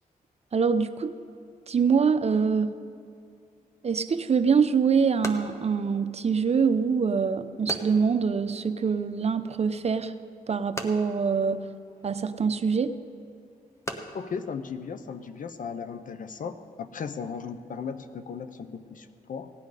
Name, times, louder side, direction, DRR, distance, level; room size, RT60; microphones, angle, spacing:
voice 1, 0.5-1.1 1.7-2.7 3.8-10.1 10.5-11.6 12.0-13.0, right 5 dB, 45° right, 11 dB, 0.7 m, -24 dB
sound 1, 4.2-15.5, left 1 dB, 20° left, 1.3 m, -43 dB
voice 2, 14.1-19.5, left 6 dB, 60° left, 11 dB, 0.7 m, -36 dB
17.5 x 9.5 x 4.9 m, 2.4 s
cardioid pair, 65°, 15 cm